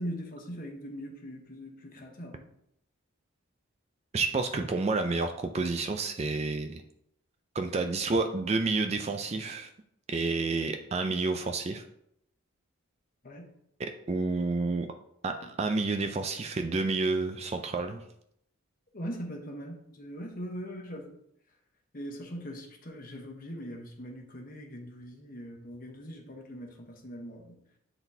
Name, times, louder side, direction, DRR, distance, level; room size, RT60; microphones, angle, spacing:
voice 1, 0.0-2.5 13.2-13.5 15.4-15.5 18.9-21.2 21.9-27.6, equal, 40° left, 2 dB, 1.0 m, -41 dB
voice 2, 4.1-6.8 7.6-9.7 10.1-11.8 13.8-14.9 15.2-18.0, right 3 dB, 30° right, 6 dB, 0.4 m, -29 dB
8.9 x 4.0 x 2.7 m, 0.73 s
head